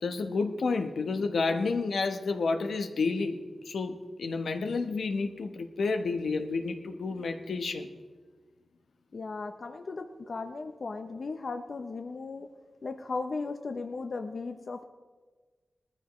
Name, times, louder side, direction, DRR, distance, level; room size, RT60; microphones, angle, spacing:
voice 1, 0.0-7.9, left 4 dB, 85° left, 5 dB, 1.1 m, -30 dB
voice 2, 9.1-12.5 12.8-14.9, left 3 dB, 55° left, 6 dB, 0.7 m, -36 dB
19.0 x 14.5 x 3.1 m, 1.4 s
wide cardioid pair, 95°, 0 cm